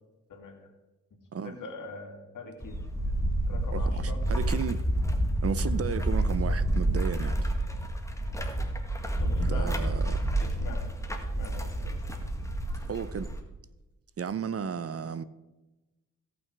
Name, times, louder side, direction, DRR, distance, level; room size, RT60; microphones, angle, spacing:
voice 1, 0.3-0.7 1.4-2.8 3.5-4.2 9.2-9.9 10.4-10.9 11.3-12.0, left 3 dB, 75° left, 2.5 m, -43 dB
sound 1, 2.6-13.4, right 1 dB, 10° left, 1.8 m, -29 dB
voice 2, 3.7-4.8 5.4-7.5 9.4-10.2 12.9-13.3 14.2-15.2, right 6 dB, 50° right, 0.7 m, -34 dB
16.5 x 6.0 x 4.7 m
cardioid pair, 70°, 31 cm